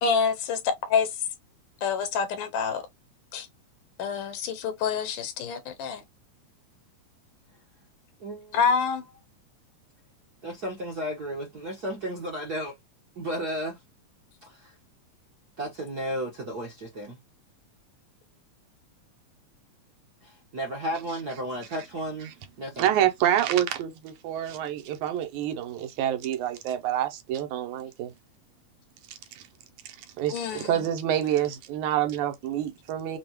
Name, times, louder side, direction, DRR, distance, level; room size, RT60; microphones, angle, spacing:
voice 1, 0.0-0.6 0.9-1.1 1.8-2.8 3.3-3.5 4.0-6.0 8.5-9.0 30.3-30.9, left 6 dB, 90° left, 2.7 m, -27 dB
voice 2, 8.2-8.6 10.4-12.7 13.2-13.8 14.4-14.7 15.6-17.2 20.2-22.3 22.6-22.9, right 1 dB, 55° right, 1.0 m, -33 dB
voice 3, 22.8-28.1 29.4-29.5 30.2-33.2, right 11 dB, 75° right, 2.2 m, -27 dB
6.8 x 2.4 x 3.0 m
omnidirectional pair, 3.6 m